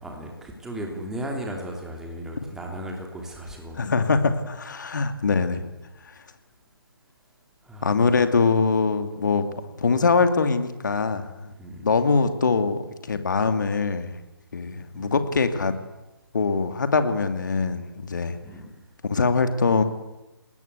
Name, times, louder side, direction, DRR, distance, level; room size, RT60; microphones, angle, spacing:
voice 1, 0.0-3.8 7.6-8.2 11.6-11.9 14.9-15.1 18.4-18.7, right 1 dB, 5° right, 1 dB, 3.2 m, -36 dB
voice 2, 3.7-5.7 7.8-9.4 9.8-11.5 11.8-14.2 14.5-15.7 16.3-18.4 19.1-19.8, left 4 dB, 50° left, 9 dB, 2.5 m, -23 dB
29.0 x 20.0 x 8.3 m, 1.0 s
figure-of-eight pair, 150°, 12 cm